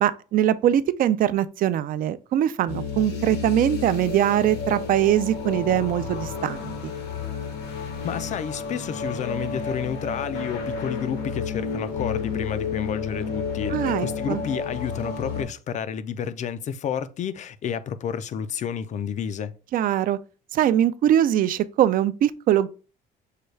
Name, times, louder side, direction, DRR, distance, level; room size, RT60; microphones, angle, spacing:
voice 1, 0.0-6.9 13.7-14.4 19.7-20.2 20.5-22.7, right 11 dB, 55° right, 0.4 m, -22 dB
sound 1, 2.7-15.4, left 5 dB, 80° left, 1.3 m, -31 dB
voice 2, 8.0-19.5, left 8 dB, 45° left, 0.4 m, -30 dB
6.5 x 2.3 x 3.2 m
cardioid pair, 110°, 17 cm